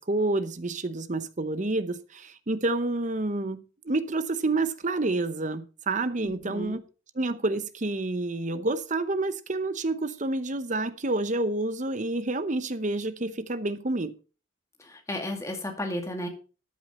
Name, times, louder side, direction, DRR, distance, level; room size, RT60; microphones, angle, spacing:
voice 1, 0.0-6.8 7.2-14.1, right 2 dB, 35° right, 0.8 m, -29 dB
voice 2, 6.2-6.8 14.8-16.3, left 1 dB, 15° left, 2.2 m, -33 dB
13.5 x 8.8 x 4.3 m
head